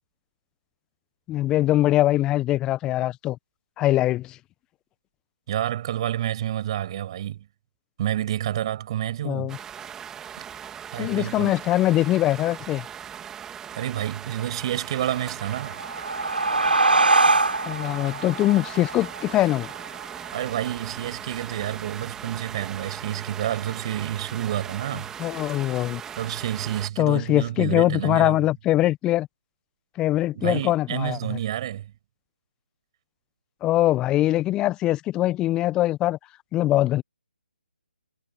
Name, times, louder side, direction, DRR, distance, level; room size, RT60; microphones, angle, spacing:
voice 1, 1.3-3.4 3.8-4.4 9.2-9.6 11.0-12.8 17.7-19.7 25.2-26.0 27.0-29.3 30.0-31.2 33.6-36.2 36.5-37.0, left 15 dB, 15° left, 1.2 m, -22 dB
voice 2, 5.5-7.5 8.0-9.6 10.9-11.5 13.7-15.8 20.3-25.1 26.2-28.4 30.3-31.9, right 12 dB, 30° right, 6.8 m, -29 dB
sound 1, 9.5-26.9, right 8 dB, 10° right, 3.5 m, -39 dB
sound 2, 15.5-20.7, right 3 dB, 75° right, 4.1 m, -24 dB
figure-of-eight pair, 145°, 5 cm